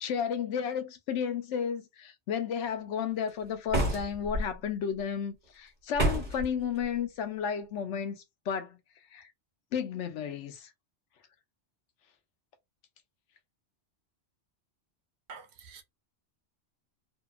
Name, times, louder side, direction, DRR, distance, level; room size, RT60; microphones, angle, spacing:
voice 1, 0.0-8.8 9.1-9.3 9.7-10.7, left 7 dB, 85° left, 0.9 m, -33 dB
sound 1, 3.7-4.4 6.0-6.5, right 1 dB, 45° right, 1.0 m, -28 dB
voice 2, 15.3-15.8, right 5 dB, 70° right, 0.8 m, -47 dB
2.7 x 2.3 x 2.3 m
omnidirectional pair, 1.2 m